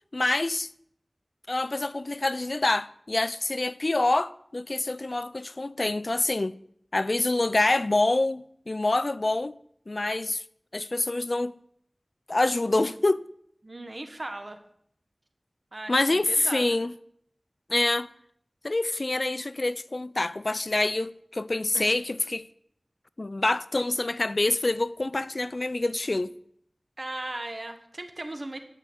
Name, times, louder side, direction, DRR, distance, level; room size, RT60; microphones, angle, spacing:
voice 1, 0.1-0.7 1.5-6.6 6.9-9.6 9.9-10.4 10.7-11.5 12.3-13.3 15.9-16.9 17.7-18.1 18.6-22.5 23.2-26.3, left 2 dB, 60° left, 0.4 m, -26 dB
voice 2, 13.6-14.6 15.7-16.7 21.7-21.9 27.0-28.6, right 2 dB, 60° right, 1.5 m, -37 dB
12.0 x 6.3 x 8.2 m
wide cardioid pair, 45°, 0 cm